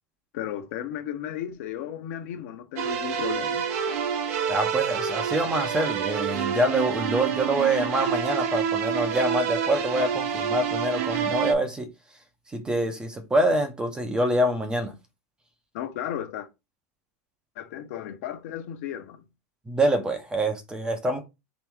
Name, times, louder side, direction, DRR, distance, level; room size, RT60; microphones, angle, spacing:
voice 1, 0.3-3.6 15.7-16.5 17.6-19.2, left 10 dB, 60° left, 1.0 m, -34 dB
sound 1, 2.8-11.5, right 7 dB, 65° right, 0.8 m, -28 dB
voice 2, 4.5-11.9 12.5-14.9 19.7-21.2, right 1 dB, 10° right, 0.7 m, -25 dB
3.5 x 3.0 x 3.5 m
supercardioid pair, 155°, 9 cm